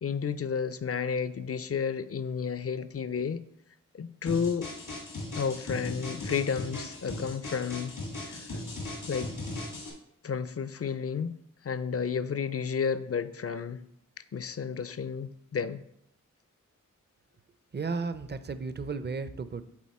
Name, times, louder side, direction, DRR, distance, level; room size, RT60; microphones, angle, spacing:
voice 1, 0.0-3.4 3.9-4.7 5.4-7.9 8.2-8.5 9.1-9.3 10.2-11.4 11.6-13.8 14.3-15.8, left 6 dB, 50° left, 14 dB, 0.5 m, -31 dB
sound 1, 4.3-9.9, left 2 dB, 85° left, 1.7 m, -38 dB
voice 2, 17.7-19.7, right 4 dB, 35° right, 12 dB, 0.5 m, -34 dB
7.4 x 4.2 x 4.2 m, 0.74 s
cardioid pair, 40°, 32 cm